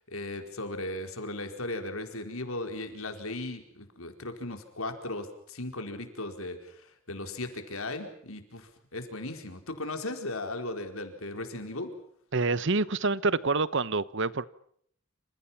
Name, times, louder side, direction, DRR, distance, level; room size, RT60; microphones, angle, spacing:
voice 1, 0.1-11.9, left 2 dB, 80° left, 4.5 m, -37 dB
voice 2, 12.3-14.4, right 3 dB, 60° right, 1.0 m, -27 dB
28.5 x 27.5 x 5.8 m
head